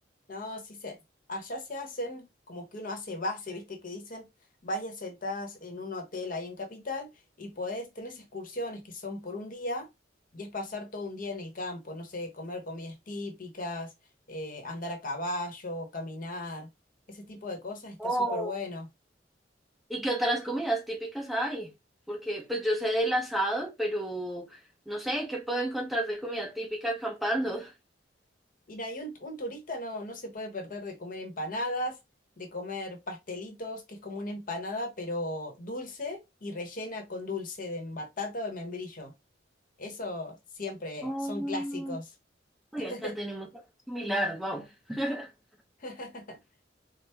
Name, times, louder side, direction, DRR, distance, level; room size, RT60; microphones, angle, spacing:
voice 1, 0.3-1.0 1.3-4.3 4.6-7.1 7.4-9.9 10.3-13.9 14.3-16.7 17.1-18.9 28.7-32.0 32.4-39.1 39.8-42.1 42.8-43.2 45.8-46.4, left 2 dB, 50° left, 1.0 m, -37 dB
voice 2, 18.0-18.5 19.9-21.7 22.1-24.6 24.9-27.7 41.0-42.0 42.7-43.5 43.9-45.3, right 1 dB, ahead, 0.8 m, -31 dB
4.3 x 2.1 x 3.4 m
head